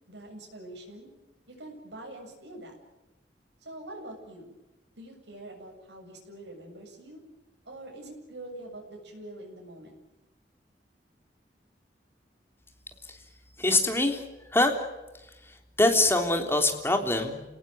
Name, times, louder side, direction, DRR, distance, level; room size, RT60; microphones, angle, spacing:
voice 1, 0.1-1.1 1.5-2.8 3.6-4.6 5.0-7.2 7.6-10.0, right 1 dB, 75° right, 1 dB, 7.9 m, -44 dB
voice 2, 13.6-14.2 14.5-14.8 15.4-17.4, left 2 dB, 15° left, 4 dB, 3.6 m, -24 dB
29.0 x 18.5 x 9.2 m, 1.0 s
head